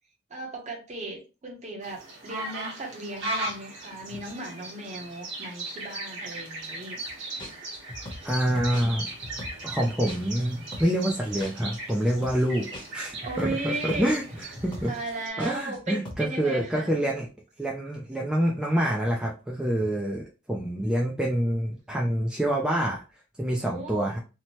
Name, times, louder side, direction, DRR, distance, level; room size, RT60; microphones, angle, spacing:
voice 1, 0.3-7.0 13.2-14.2 14.8-17.2 23.6-24.2, right 2 dB, 35° right, 0.8 m, -36 dB
sound 1, 1.8-15.3, right 2 dB, 60° right, 1.0 m, -38 dB
sound 2, 7.1-7.2 7.4-10.5 10.7-15.8 16.1-16.3, left 1 dB, 25° left, 0.9 m, -41 dB
voice 2, 8.2-9.1 9.6-13.5 13.8-14.2 14.6-14.9 15.4-17.3 17.6-23.0 23.4-24.2, right 1 dB, 5° right, 0.3 m, -26 dB
2.8 x 2.1 x 2.9 m
head